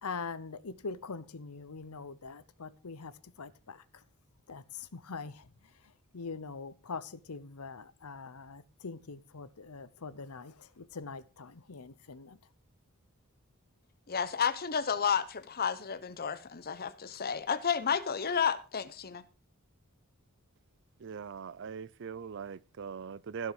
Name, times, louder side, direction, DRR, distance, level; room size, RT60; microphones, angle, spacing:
voice 1, 0.0-3.1 3.4-3.8 4.5-5.5 6.1-12.4, left 4 dB, 80° left, 0.8 m, -43 dB
voice 2, 14.1-19.2, left 7 dB, 45° left, 0.9 m, -31 dB
voice 3, 21.0-23.5, right 6 dB, 55° right, 0.5 m, -41 dB
15.5 x 6.6 x 4.8 m
head